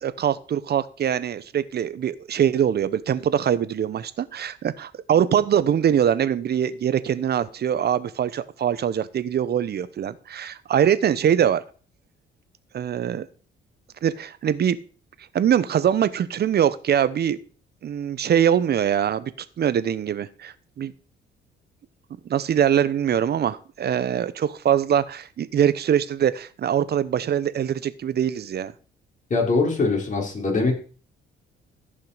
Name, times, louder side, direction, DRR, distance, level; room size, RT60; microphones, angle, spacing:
voice 1, 0.0-11.6 12.7-13.2 14.0-14.8 15.3-17.4 17.8-19.3 19.6-20.9 22.3-28.7, right 9 dB, 55° right, 16 dB, 0.9 m, -23 dB
voice 2, 29.3-30.7, left 3 dB, 40° left, 0 dB, 4.3 m, -22 dB
14.5 x 5.6 x 5.0 m, 0.39 s
cardioid pair, 90°, 20 cm